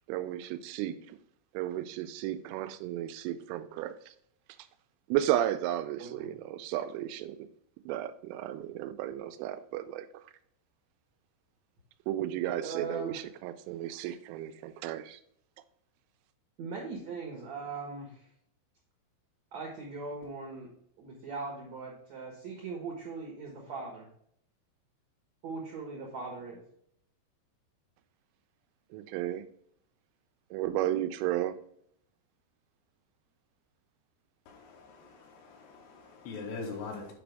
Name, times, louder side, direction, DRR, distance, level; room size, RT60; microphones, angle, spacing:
voice 1, 0.1-1.2 1.5-3.9 5.1-7.4 7.9-10.1 12.1-15.2 28.9-29.4 30.5-31.5, right 13 dB, 90° right, 3.1 m, -33 dB
voice 2, 6.0-6.3 12.6-13.2 16.6-18.2 19.5-20.7 21.0-24.1 25.4-26.6, right 4 dB, 75° right, 1.6 m, -40 dB
voice 3, 34.5-35.1 35.4-37.1, left 4 dB, 75° left, 3.4 m, -42 dB
8.6 x 5.1 x 3.4 m
omnidirectional pair, 5.5 m